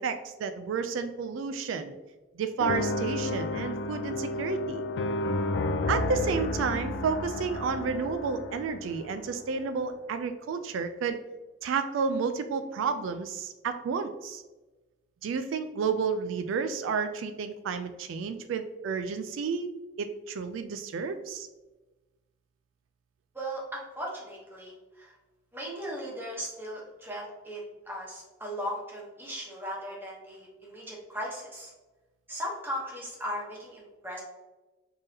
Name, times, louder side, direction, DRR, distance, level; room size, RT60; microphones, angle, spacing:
voice 1, 0.0-2.0 2.4-4.8 5.9-11.2 11.6-14.4 15.2-19.7 20.0-21.5, right 5 dB, 80° right, 8 dB, 0.3 m, -31 dB
sound 1, 2.6-9.7, left 2 dB, 60° left, 0.3 m, -32 dB
voice 2, 23.3-25.1 25.5-27.6 27.9-31.7 32.3-34.2, equal, 10° right, -4 dB, 0.9 m, -37 dB
3.4 x 3.4 x 2.7 m, 1.1 s
head